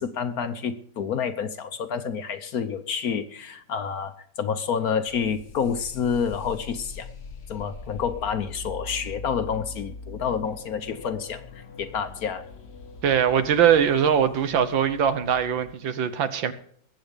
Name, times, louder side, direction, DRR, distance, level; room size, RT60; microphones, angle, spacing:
voice 1, 0.0-7.1 7.5-12.5, left 7 dB, 60° left, 1.1 m, -29 dB
sound 1, 5.1-15.7, left 4 dB, 40° left, 1.0 m, -42 dB
voice 2, 13.0-16.5, right 8 dB, 80° right, 1.8 m, -21 dB
21.0 x 8.0 x 5.2 m
omnidirectional pair, 2.1 m